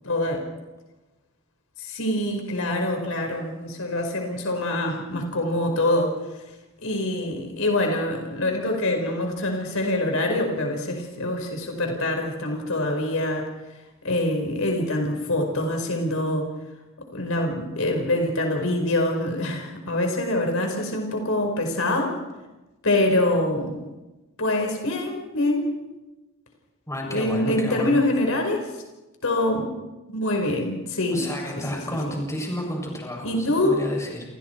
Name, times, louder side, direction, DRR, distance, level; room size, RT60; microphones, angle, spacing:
voice 1, 0.0-0.4 1.8-6.1 6.8-13.5 14.0-16.4 17.1-22.1 22.8-23.8 24.4-25.7 27.0-28.8 29.2-29.7 30.1-31.3 31.5-31.8 33.2-33.8, left 1 dB, 70° left, 3 dB, 5.1 m, -25 dB
voice 2, 26.9-28.0 31.1-34.2, equal, 15° left, 0 dB, 7.7 m, -31 dB
29.5 x 29.0 x 4.7 m, 1.1 s
head